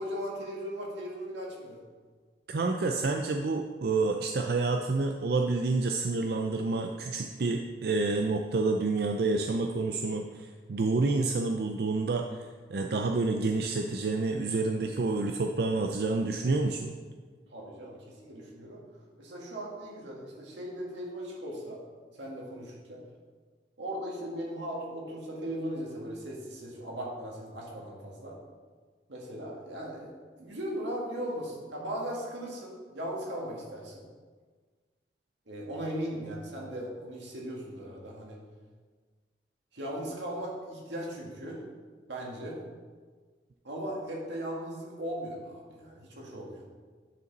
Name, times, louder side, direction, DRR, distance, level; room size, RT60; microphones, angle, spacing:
voice 1, 0.0-1.8 17.5-18.8 19.2-21.8 22.1-23.0 23.8-28.4 29.1-30.1 30.4-34.1 35.5-38.4 39.7-41.6 42.1-42.6 43.6-46.7, equal, 85° right, -3 dB, 1.9 m, -38 dB
voice 2, 2.5-16.9, right 3 dB, 60° right, 3 dB, 0.4 m, -29 dB
9.6 x 5.1 x 4.0 m, 1.5 s
head